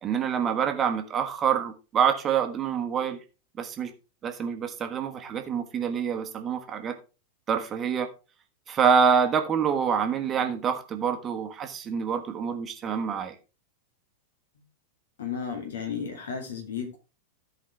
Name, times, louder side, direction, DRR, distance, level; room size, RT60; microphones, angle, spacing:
voice 1, 0.0-3.2 3.6-3.9 4.2-6.9 7.5-8.1 8.7-13.3, right 7 dB, 25° right, 1.3 m, -26 dB
voice 2, 15.2-17.0, left 7 dB, 60° left, 2.3 m, -33 dB
14.5 x 5.0 x 3.4 m
figure-of-eight pair, 90°, 0 cm